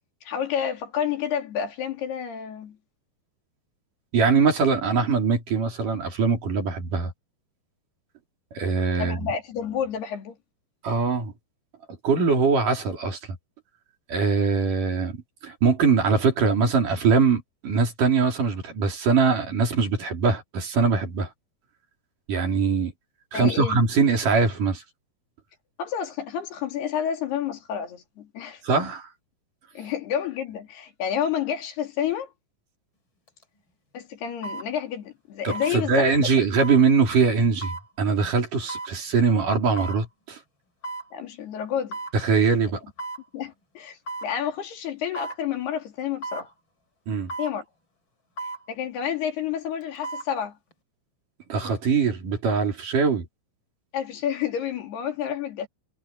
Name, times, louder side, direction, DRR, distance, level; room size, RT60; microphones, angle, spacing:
voice 1, 0.2-2.8 9.0-10.4 23.3-23.8 25.8-28.6 29.7-32.3 33.9-36.3 41.1-42.0 43.3-46.5 47.4-47.6 48.7-50.6 53.9-55.7, left 8 dB, 80° left, 4.9 m, -29 dB
voice 2, 4.1-7.1 8.5-9.3 10.8-11.3 12.0-13.2 14.1-21.3 22.3-22.9 23.3-24.8 28.6-29.1 35.4-40.4 42.1-42.8 47.1-47.3 51.5-53.3, right 5 dB, 55° right, 5.1 m, -22 dB
sound 1, 33.3-33.4 34.4-34.7 35.5-35.7 36.6-36.8 37.6-37.9 38.7-38.9 39.8-40.0 40.8-41.1 41.9-42.2 43.0-43.2 44.1-44.3 45.1-45.4 46.2-46.5 47.3-47.6 48.4-48.6 49.8-50.3 50.7-50.8, right 2 dB, 30° left, 5.7 m, -34 dB
omnidirectional pair, 4.6 m